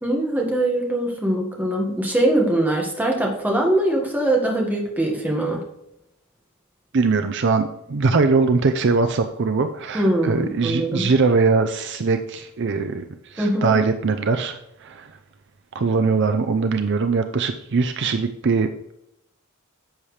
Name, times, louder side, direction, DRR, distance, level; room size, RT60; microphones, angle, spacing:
voice 1, 0.0-5.6 9.9-11.0 13.4-13.8, right 1 dB, 10° right, -1 dB, 1.7 m, -22 dB
voice 2, 6.9-13.0 13.3-15.1 15.7-18.7, right 4 dB, 55° right, 8 dB, 0.5 m, -21 dB
10.5 x 7.2 x 3.3 m, 0.82 s
head